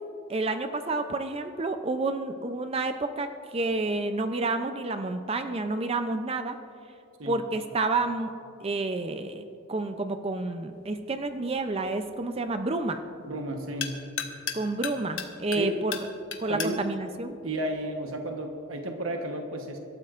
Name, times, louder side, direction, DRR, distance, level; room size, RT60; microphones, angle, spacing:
voice 1, 0.3-6.6 7.3-8.3 8.6-9.4 9.7-13.0 14.5-16.0 16.4-17.4, right 3 dB, 30° right, 8 dB, 0.5 m, -29 dB
sound 1, 10.7-18.3, left 7 dB, 70° left, 1.1 m, -40 dB
voice 2, 13.2-14.0 15.6-15.7 16.5-16.8 17.4-19.8, right 1 dB, 80° right, 3 dB, 1.1 m, -33 dB
25.0 x 13.0 x 2.5 m, 2.7 s
head